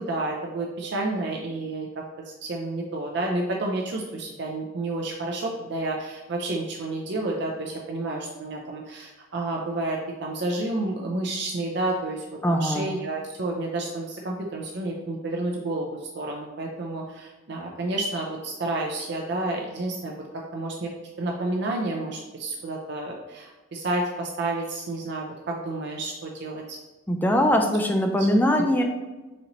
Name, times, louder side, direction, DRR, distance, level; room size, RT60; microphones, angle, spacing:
voice 1, 0.0-2.0 2.4-20.1 20.5-20.9 21.2-26.8 27.5-27.6 28.2-28.3, right 2 dB, 55° right, -1 dB, 0.5 m, -30 dB
voice 2, 12.4-12.9 27.1-28.8, equal, 10° left, 3 dB, 0.3 m, -21 dB
4.2 x 3.9 x 3.0 m, 1.2 s
head